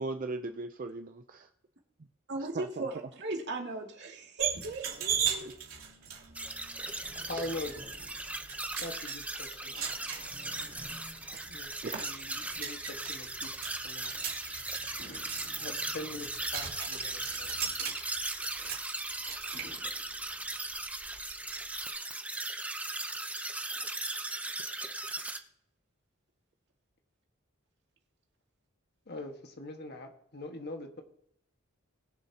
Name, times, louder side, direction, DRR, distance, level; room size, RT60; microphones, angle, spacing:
voice 1, 0.0-1.5 2.5-2.9 5.4-5.5 7.3-7.5 11.8-12.0 15.4-15.5, right 3 dB, 40° right, 7 dB, 0.5 m, -38 dB
voice 2, 2.3-5.6 6.0-6.2 11.9-12.0, right 2 dB, 55° right, 1 dB, 2.2 m, -38 dB
sound 1, 4.4-21.8, right 7 dB, 75° right, 3.3 m, -40 dB
sound 2, 6.3-25.4, right 2 dB, 5° right, 0.7 m, -38 dB
voice 3, 7.2-8.0 8.8-9.8 11.5-11.7 12.0-14.1 15.6-17.8 29.1-31.0, left 2 dB, 55° left, 4 dB, 1.5 m, -42 dB
Fireworks, 9.7-12.2 12.9-13.1 15.0-17.5 17.9-18.0 19.5-21.4 22.1-22.2, equal, 80° left, 4.0 m, -58 dB
20.5 x 7.3 x 2.9 m, 0.73 s
head